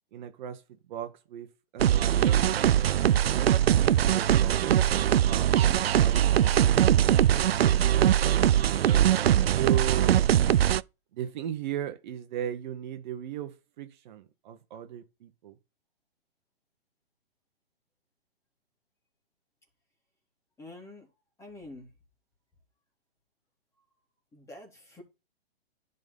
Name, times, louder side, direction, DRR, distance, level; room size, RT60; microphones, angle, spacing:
voice 1, 0.1-2.6 3.2-3.5 3.9-4.8 5.1-5.7 6.0-6.8 7.6-8.5 9.4-10.3 11.1-15.6, right 10 dB, 50° right, 1.3 m, -37 dB
sound 1, 1.8-10.8, right 11 dB, 80° right, 0.6 m, -22 dB
voice 2, 20.6-21.1 21.4-21.9 24.3-25.0, left 2 dB, 10° left, 3.2 m, -46 dB
10.5 x 4.1 x 5.5 m
hypercardioid pair, 135°, 30 cm